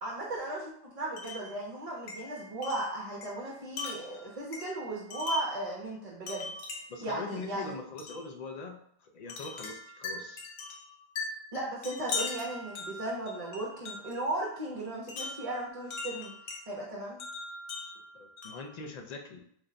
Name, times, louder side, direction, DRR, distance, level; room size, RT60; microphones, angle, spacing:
voice 1, 0.0-6.5 7.0-7.8 11.5-16.3 16.7-17.2, right 2 dB, 40° right, -4 dB, 0.6 m, -36 dB
Wind chime, 1.2-1.5 2.1-5.6 6.3-7.1 8.0-8.2 9.3-14.2 15.1-16.6 17.2-18.7, left 3 dB, 75° left, 0.9 m, -40 dB
voice 2, 6.9-10.4 18.1-19.4, left 4 dB, 50° left, 4 dB, 0.5 m, -42 dB
3.3 x 2.2 x 3.8 m, 0.68 s
omnidirectional pair, 1.1 m